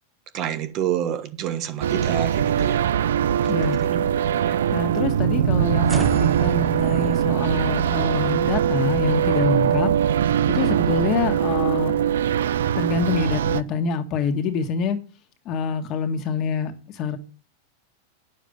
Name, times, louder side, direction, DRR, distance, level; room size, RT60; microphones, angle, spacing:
voice 1, 0.3-2.8 3.4-4.0 4.3-4.6, right 10 dB, 45° right, 1.3 m, -28 dB
sound 1, 1.8-13.6, right 9 dB, 90° right, 0.4 m, -21 dB
voice 2, 3.5-3.8 4.7-9.9 10.5-12.0 12.7-15.0 15.4-17.2, left 5 dB, 40° left, 1.5 m, -26 dB
sound 2, 5.9-12.2, right 3 dB, 10° right, 0.6 m, -38 dB
9.5 x 7.1 x 5.3 m
supercardioid pair, 135°, 0 cm